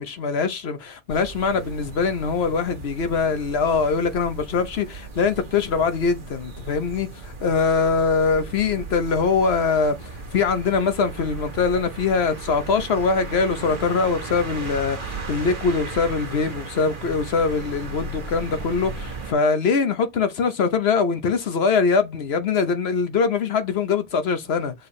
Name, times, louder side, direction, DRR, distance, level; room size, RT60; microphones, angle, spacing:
voice 1, 0.0-7.1 7.4-24.7, left 5 dB, 65° left, 1.2 m, -22 dB
sound 1, 1.1-19.3, right 4 dB, 50° right, 1.3 m, -36 dB
6.9 x 4.4 x 3.2 m
omnidirectional pair, 1.2 m